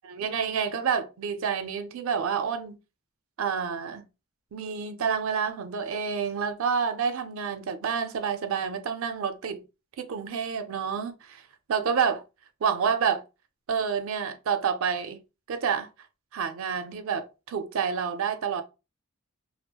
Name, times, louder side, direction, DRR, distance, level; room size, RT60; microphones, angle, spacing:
voice 1, 0.0-2.8 3.4-4.0 4.5-9.6 10.0-11.4 11.7-12.2 12.6-13.2 13.7-15.2 15.5-15.9 16.3-18.6, right 6 dB, 75° right, 0.4 m, -28 dB
2.8 x 2.0 x 2.2 m
head